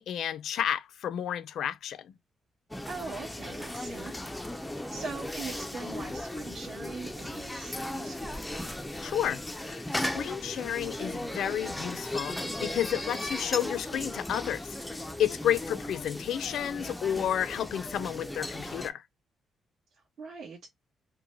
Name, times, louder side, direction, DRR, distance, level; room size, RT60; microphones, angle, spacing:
voice 1, 0.0-2.1 9.0-19.0, left 10 dB, 70° left, 0.5 m, -31 dB
sound 1, 2.7-18.9, left 1 dB, 5° left, 0.4 m, -37 dB
voice 2, 2.8-4.1 4.9-8.4 20.2-20.7, right 4 dB, 60° right, 1.6 m, -41 dB
4.6 x 2.2 x 2.5 m
cardioid pair, 145°, 0 cm